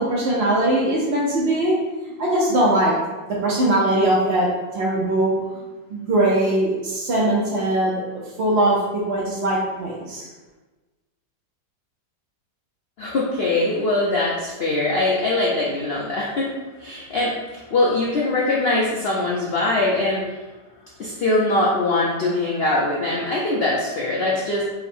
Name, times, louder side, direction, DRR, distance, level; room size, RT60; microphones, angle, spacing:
voice 1, 0.0-1.8 2.2-2.9 3.3-4.5 4.7-5.3 5.9-10.3, right 1 dB, 65° right, -5 dB, 0.6 m, -21 dB
voice 2, 13.0-16.5 16.8-20.3 21.0-24.6, left 2 dB, 75° left, -5 dB, 0.5 m, -22 dB
4.0 x 2.1 x 4.2 m, 1.2 s
omnidirectional pair, 1.7 m